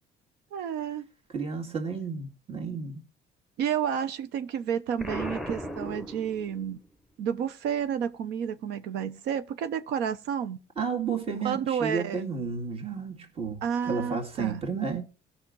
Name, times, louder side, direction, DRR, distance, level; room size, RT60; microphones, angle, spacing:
voice 1, 0.5-1.0 3.6-6.8 7.2-10.6 11.4-12.2 13.6-14.6, right 8 dB, 90° right, 0.9 m, -30 dB
voice 2, 1.3-3.0 10.8-15.0, right 5 dB, 35° right, 2.3 m, -32 dB
Explosion, 5.0-6.8, right 1 dB, ahead, 1.0 m, -36 dB
17.0 x 6.0 x 3.9 m
cardioid pair, 110°, 17 cm